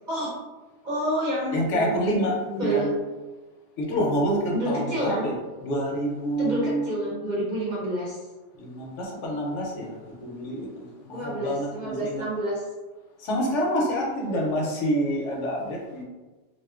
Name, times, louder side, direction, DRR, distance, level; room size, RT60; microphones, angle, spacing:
voice 1, 0.8-2.1 2.5-2.9 4.5-5.3 6.4-8.2 11.1-12.6, right 1 dB, 50° right, -6 dB, 0.6 m, -28 dB
voice 2, 1.5-2.4 2.6-2.9 3.8-5.3 5.6-6.8 8.6-9.9 10.2-10.7 11.1-12.2 13.2-16.0, equal, 80° left, -1 dB, 1.0 m, -27 dB
2.5 x 2.4 x 2.3 m, 1.2 s
omnidirectional pair, 1.2 m